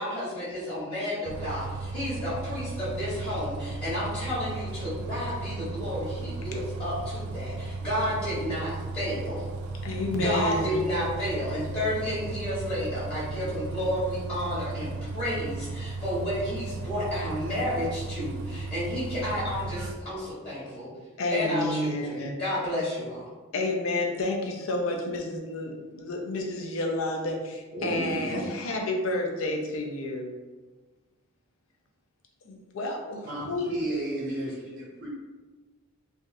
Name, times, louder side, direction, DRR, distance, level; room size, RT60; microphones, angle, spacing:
voice 1, 0.0-9.4 10.1-20.9 21.3-23.3, equal, 30° left, -12 dB, 1.1 m, -31 dB
Bus, 1.2-19.9, right 3 dB, 80° right, 0.3 m, -35 dB
voice 2, 9.8-10.8 21.2-22.4 23.5-30.3 32.4-33.9, left 2 dB, 65° left, 1 dB, 0.5 m, -30 dB
voice 3, 27.7-28.5 33.2-35.1, right 1 dB, 50° right, -5 dB, 0.6 m, -33 dB
3.4 x 2.5 x 2.6 m, 1.3 s
head